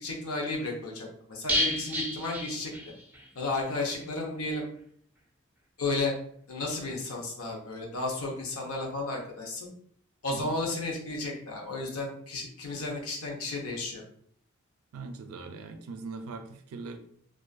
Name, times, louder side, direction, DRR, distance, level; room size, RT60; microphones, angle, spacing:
voice 1, 0.0-2.7 3.4-4.7 5.8-6.1 6.5-9.7 10.2-14.0, left 2 dB, 85° left, 0 dB, 0.7 m, -33 dB
sound 1, 1.5-3.3 3.5-3.6 4.0-4.1, left 1 dB, 10° right, 0.3 m, -31 dB
voice 2, 14.9-17.0, right 4 dB, 85° right, 7 dB, 0.4 m, -41 dB
2.5 x 2.4 x 2.2 m, 0.62 s
head